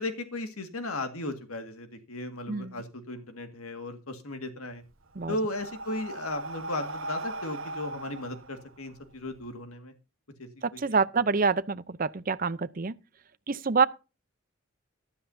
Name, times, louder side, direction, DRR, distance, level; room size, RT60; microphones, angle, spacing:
voice 1, 0.0-4.8 5.3-9.9 10.4-10.8, left 2 dB, 90° left, 1.9 m, -36 dB
Breathing, 4.7-9.4, right 2 dB, 70° right, 1.2 m, -39 dB
voice 2, 10.6-12.9 13.5-13.9, right 4 dB, 40° right, 0.6 m, -26 dB
13.5 x 12.5 x 2.7 m
head